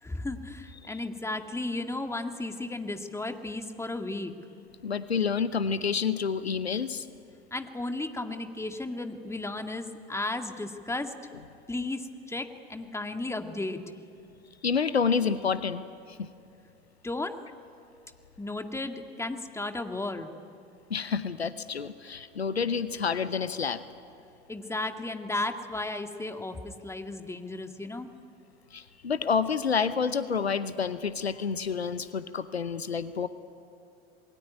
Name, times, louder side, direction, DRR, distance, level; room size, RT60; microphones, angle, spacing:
voice 1, 0.0-4.3 7.5-11.1 11.7-13.8 17.0-17.4 18.4-20.3 24.5-28.1, left 2 dB, 10° left, 6 dB, 2.0 m, -34 dB
voice 2, 4.8-7.1 14.6-15.8 16.1-16.3 20.9-23.8 28.7-33.3, left 6 dB, 85° left, 14 dB, 0.8 m, -29 dB
27.5 x 20.5 x 9.7 m, 2.6 s
figure-of-eight pair, 70°, 31 cm